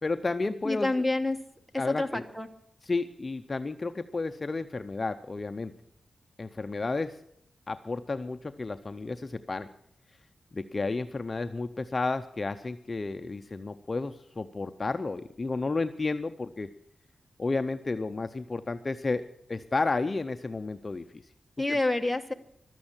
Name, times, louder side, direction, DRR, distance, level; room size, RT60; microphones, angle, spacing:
voice 1, 0.0-0.9 1.8-2.2 2.8-5.7 6.4-7.2 7.7-9.7 10.5-16.7 17.4-19.2 19.5-21.2 21.7-21.8, left 3 dB, 30° left, 8 dB, 0.6 m, -32 dB
voice 2, 0.6-1.4 1.9-2.5 21.6-22.3, left 2 dB, ahead, 4 dB, 1.2 m, -28 dB
15.5 x 12.5 x 7.2 m, 0.72 s
wide cardioid pair, 140°, 0 cm